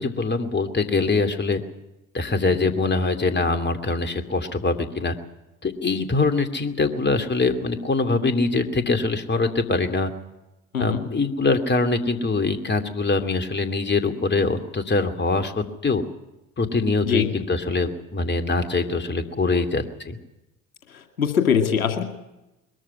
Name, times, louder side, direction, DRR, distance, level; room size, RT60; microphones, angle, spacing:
voice 1, 0.0-1.6 2.1-5.1 5.6-10.1 10.8-16.0 16.6-20.2, left 3 dB, 25° left, 8 dB, 2.7 m, -23 dB
voice 2, 20.9-22.0, left 7 dB, 85° left, 6 dB, 2.4 m, -23 dB
22.0 x 14.0 x 9.7 m, 0.95 s
hypercardioid pair, 60°, 41 cm